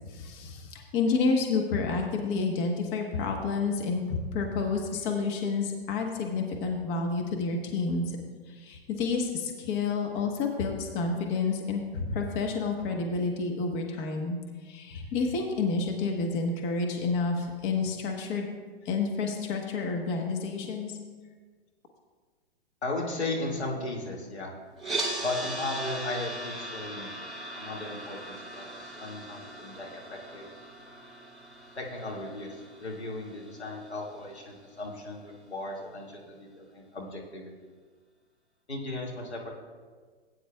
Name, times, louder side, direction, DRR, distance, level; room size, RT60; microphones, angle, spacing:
voice 1, 0.1-8.2 8.5-18.5 18.8-21.0, left 4 dB, 35° left, 2 dB, 1.2 m, -29 dB
voice 2, 22.8-24.5 25.2-27.3 27.5-30.5 31.8-37.5 38.7-39.5, left 2 dB, 85° left, -2 dB, 2.3 m, -36 dB
sound 1, 24.8-34.9, right 2 dB, ahead, 2.0 m, -39 dB
17.0 x 9.3 x 2.4 m, 1.5 s
figure-of-eight pair, 120°, 32 cm